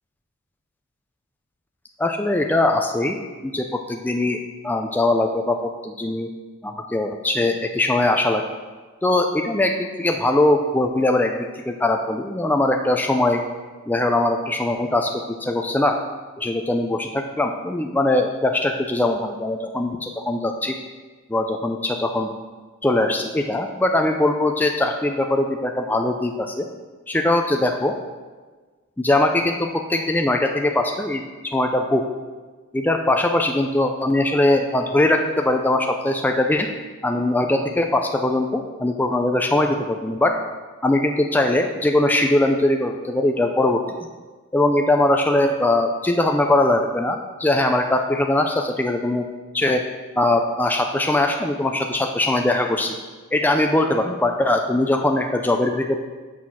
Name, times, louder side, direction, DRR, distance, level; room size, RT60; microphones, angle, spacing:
voice 1, 2.0-4.4 4.6-6.3 6.6-8.4 9.0-13.4 13.9-16.0 16.4-20.7 21.3-22.3 22.8-26.7 27.1-28.0 29.0-32.0 32.7-36.7 37.0-40.3 40.8-43.8 44.5-49.2 49.5-49.8 50.2-52.9 53.3-56.0, left 1 dB, 10° left, 3 dB, 0.4 m, -21 dB
6.3 x 6.3 x 5.6 m, 1.4 s
head